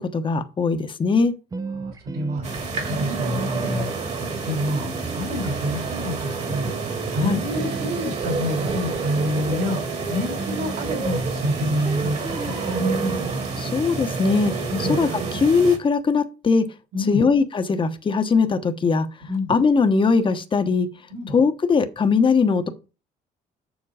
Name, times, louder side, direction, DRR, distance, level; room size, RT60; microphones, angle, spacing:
voice 1, 0.0-1.3 7.2-7.4 13.6-14.5 14.8-16.6 17.1-19.1 19.5-20.9 21.3-22.7, left 4 dB, 30° left, 1.1 m, -20 dB
sound 1, 1.5-3.0 3.5-15.7, right 4 dB, 20° right, 0.6 m, -35 dB
voice 2, 1.8-6.7 7.1-9.8 10.1-12.6 14.8-15.0 16.9-17.2 19.3-19.5 21.1-21.3, left 1 dB, 65° right, 3.8 m, -28 dB
sound 2, 2.4-15.8, right 4 dB, 40° right, 2.2 m, -29 dB
sound 3, 7.5-14.4, right 4 dB, 85° right, 1.6 m, -42 dB
7.3 x 6.6 x 4.9 m
cardioid pair, 110°, 17 cm